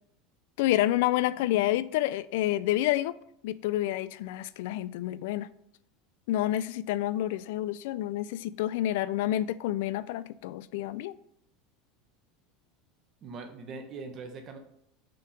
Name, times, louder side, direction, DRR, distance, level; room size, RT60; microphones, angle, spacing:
voice 1, 0.6-3.1 3.4-5.5 6.3-11.2, left 14 dB, 75° left, 0.3 m, -28 dB
voice 2, 13.2-14.6, right 4 dB, 40° right, 1.2 m, -41 dB
5.3 x 4.5 x 5.0 m
supercardioid pair, 105°, 0 cm